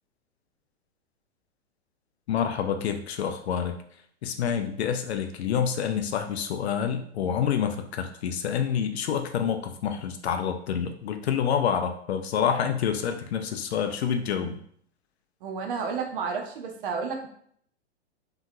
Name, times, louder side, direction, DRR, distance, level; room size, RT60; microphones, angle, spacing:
voice 1, 2.3-3.7 4.2-14.6, left 8 dB, 65° left, 7 dB, 0.5 m, -27 dB
voice 2, 15.4-17.3, right 5 dB, 50° right, 3 dB, 0.6 m, -31 dB
2.8 x 2.3 x 2.6 m, 0.63 s
hypercardioid pair, 110°, 34 cm